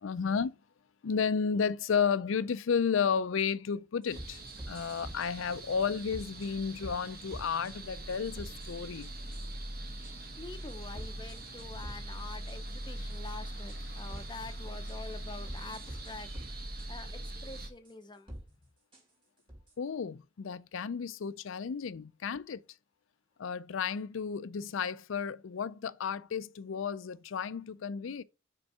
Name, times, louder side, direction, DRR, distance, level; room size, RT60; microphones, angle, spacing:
voice 1, 0.0-0.5 1.0-4.4 4.7-9.1 19.8-22.6 23.4-28.2, left 6 dB, 70° left, 0.4 m, -32 dB
sound 1, 4.0-5.3 5.8-6.5 6.8-7.0 7.3-7.7 8.1-9.5 10.0-10.1 10.7-12.2 12.5-12.6 13.1-13.3 13.7-13.8 14.1-14.3 14.9-15.1 15.5-16.9 17.2-17.3 17.9-18.0 18.3-18.5 18.9-19.0 19.5-19.7, right 1 dB, 25° right, 2.1 m, -46 dB
sound 2, 4.1-17.7, right 1 dB, 50° right, 1.2 m, -42 dB
voice 2, 10.4-16.3 16.9-18.3, left 3 dB, 20° left, 0.6 m, -46 dB
5.3 x 4.6 x 5.5 m
head